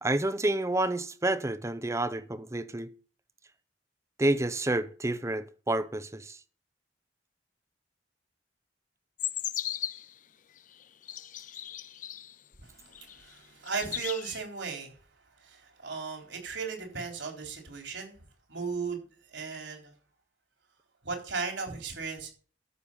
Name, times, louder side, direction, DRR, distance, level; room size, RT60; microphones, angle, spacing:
voice 1, 0.0-2.9 4.2-6.4, right 2 dB, 15° right, 0.6 m, -29 dB
sound 1, 9.2-10.1 10.8-12.3 12.9-13.4 13.7-14.4, left 11 dB, 45° left, 0.5 m, -37 dB
voice 2, 12.6-15.0 15.4-18.2 18.5-19.0 19.3-19.9 21.0-22.3, right 5 dB, 85° right, 3.8 m, -36 dB
13.5 x 6.5 x 5.6 m
head